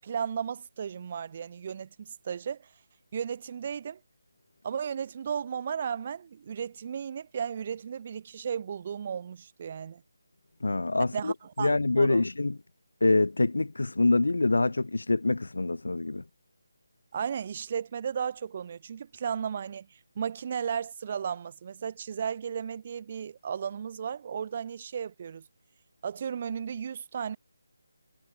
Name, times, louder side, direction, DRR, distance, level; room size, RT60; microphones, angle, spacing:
voice 1, 0.0-2.6 3.1-4.0 4.6-10.0 11.1-12.2 17.1-25.4 26.0-27.4, right 7 dB, 35° right, 6.9 m, -34 dB
voice 2, 10.6-11.3 11.6-12.6 13.0-16.2, left 2 dB, 85° left, 4.0 m, -25 dB
figure-of-eight pair, 165°, 0 cm